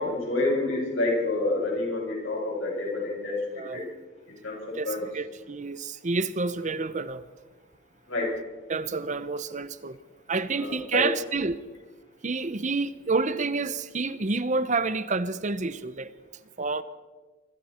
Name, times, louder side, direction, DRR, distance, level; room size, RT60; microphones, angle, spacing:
voice 1, 0.0-3.8 4.3-5.1 8.1-8.4 10.5-11.1, left 2 dB, 70° left, 7.2 m, -28 dB
voice 2, 3.5-3.9 4.7-7.2 8.7-10.0 10.3-11.6 12.2-16.1 16.6-16.8, right 3 dB, 40° right, 0.8 m, -29 dB
25.5 x 24.5 x 4.4 m
head